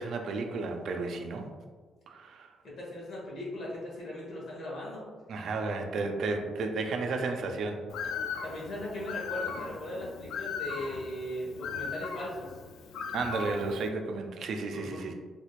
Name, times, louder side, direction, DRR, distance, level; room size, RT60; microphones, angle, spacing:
voice 1, 0.0-1.5 2.1-2.5 5.3-7.8 13.1-15.1, right 3 dB, 65° right, 4 dB, 0.4 m, -33 dB
voice 2, 2.6-5.1 8.4-12.5 14.7-15.0, left 1 dB, 60° left, -5 dB, 1.3 m, -38 dB
Bird, 7.9-13.9, left 6 dB, 80° left, 0.3 m, -38 dB
3.4 x 2.9 x 2.4 m, 1.4 s
cardioid pair, 90°, 0 cm